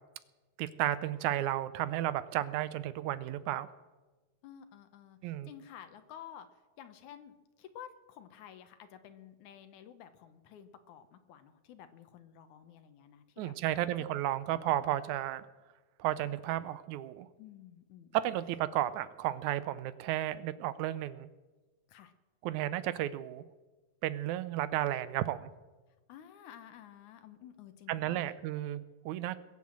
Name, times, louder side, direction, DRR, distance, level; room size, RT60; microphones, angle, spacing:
voice 1, 0.6-3.7 5.2-5.5 13.4-15.5 16.0-17.3 18.1-21.3 22.4-23.4 24.0-25.5 27.9-29.4, right 13 dB, 80° right, 15 dB, 2.0 m, -33 dB
voice 2, 4.4-13.8 14.5-14.7 17.4-18.2 21.9-22.1 26.1-28.4, left 9 dB, 75° left, 9 dB, 2.3 m, -52 dB
21.0 x 7.6 x 7.5 m, 1.2 s
omnidirectional pair, 3.5 m